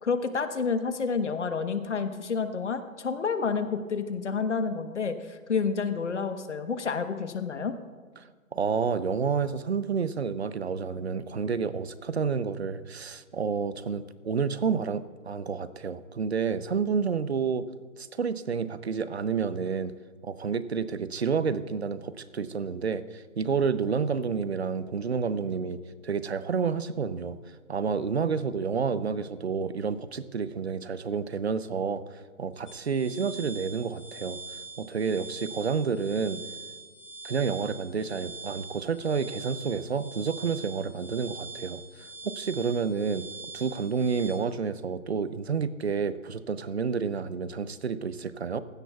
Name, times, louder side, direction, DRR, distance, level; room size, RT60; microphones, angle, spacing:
voice 1, 0.0-7.8, left 5 dB, 55° left, 9 dB, 1.2 m, -29 dB
voice 2, 8.2-17.7 18.0-19.9 20.2-27.4 27.7-32.0 32.4-34.4 34.8-36.4 37.2-43.2 43.5-48.6, right 5 dB, 50° right, 14 dB, 0.7 m, -29 dB
sound 1, 32.7-44.3, right 4 dB, 20° left, 1.8 m, -43 dB
16.0 x 16.0 x 2.4 m, 1.5 s
hypercardioid pair, 175°, 42 cm